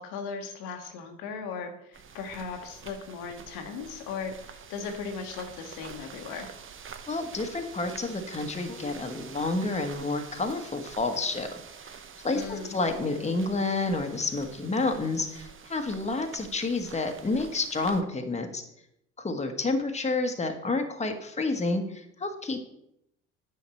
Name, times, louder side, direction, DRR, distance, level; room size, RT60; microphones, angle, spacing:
voice 1, 0.0-6.5 12.3-12.8, left 5 dB, 70° left, 5 dB, 1.4 m, -37 dB
sound 1, 1.9-18.0, right 6 dB, 35° right, 1.0 m, -47 dB
voice 2, 7.1-11.6 12.2-18.6 19.2-22.6, left 3 dB, 20° left, 5 dB, 1.4 m, -29 dB
9.8 x 5.7 x 4.4 m, 0.79 s
hypercardioid pair, 55°, 37 cm